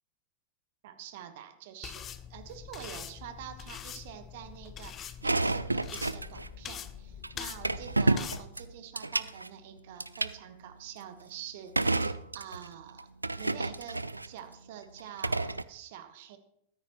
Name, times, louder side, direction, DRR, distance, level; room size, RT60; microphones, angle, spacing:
voice 1, 0.8-13.1 13.4-16.4, right 10 dB, 55° right, 9 dB, 1.1 m, -46 dB
sound 1, 1.8-8.4, left 9 dB, 30° left, 0.6 m, -44 dB
soda cans in fridge, 5.2-6.5 7.2-7.3 7.6-9.5 10.0-10.3 11.8-12.7 13.0-14.3 15.0-15.6, right 2 dB, 90° right, 0.3 m, -30 dB
13.0 x 9.6 x 3.0 m, 0.76 s
figure-of-eight pair, 90°, 0 cm